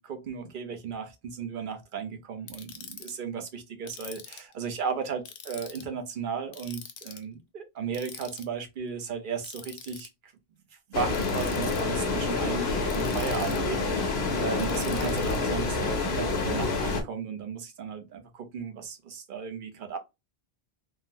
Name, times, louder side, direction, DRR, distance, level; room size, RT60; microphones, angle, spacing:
voice 1, 0.0-10.3 10.9-20.0, right 6 dB, 60° right, 0.8 m, -35 dB
Ratchet pawl, 2.5-3.1 3.9-4.5 5.3-5.9 6.5-7.2 7.9-8.4 9.4-10.1 11.1-11.8 12.9-13.7 14.6-15.4, left 7 dB, 60° left, 0.7 m, -44 dB
sound 1, 10.9-17.0, left 3 dB, 80° left, 1.1 m, -28 dB
3.7 x 2.0 x 2.6 m
omnidirectional pair, 1.1 m